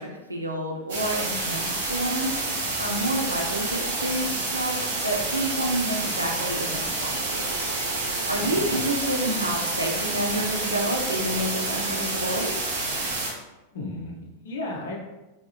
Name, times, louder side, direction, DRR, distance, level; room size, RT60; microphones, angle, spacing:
voice 1, 0.0-2.4 2.8-7.5 8.1-12.5, right 1 dB, 85° right, 0 dB, 0.7 m, -29 dB
sound 1, 0.9-13.3, right 2 dB, 55° right, 1.4 m, -29 dB
sound 2, 6.3-12.5, right 4 dB, 40° right, 0.6 m, -42 dB
voice 2, 8.3-8.8 13.7-15.1, left 2 dB, 60° left, -1 dB, 0.7 m, -35 dB
4.7 x 3.1 x 2.9 m, 1.1 s
figure-of-eight pair, 90°, 0 cm